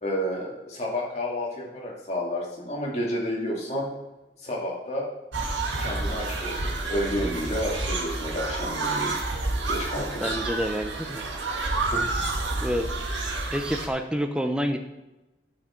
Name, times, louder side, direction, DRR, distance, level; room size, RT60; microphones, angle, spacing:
voice 1, 0.0-3.9 4.4-5.1 5.8-9.2 9.7-10.4 11.9-12.1, equal, 35° left, -3 dB, 2.6 m, -30 dB
sound 1, 5.3-13.9, right 2 dB, 90° right, 1.5 m, -29 dB
voice 2, 10.2-11.2 12.6-12.9 13.5-14.8, equal, 5° right, 5 dB, 0.6 m, -28 dB
12.0 x 6.3 x 4.5 m, 1.0 s
head